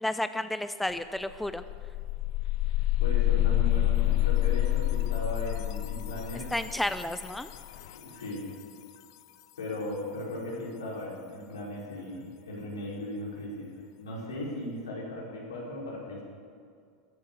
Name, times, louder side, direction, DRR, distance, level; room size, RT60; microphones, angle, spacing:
voice 1, 0.0-1.6 6.5-7.5, left 1 dB, 5° left, 11 dB, 0.6 m, -31 dB
sound 1, 0.9-1.0 1.3-8.1, left 15 dB, 65° left, 0.8 m, -28 dB
voice 2, 2.7-6.5 7.9-8.5 9.6-16.2, left 1 dB, 85° left, -4 dB, 4.6 m, -37 dB
14.5 x 10.5 x 7.3 m, 2.2 s
hypercardioid pair, 90°, 2 cm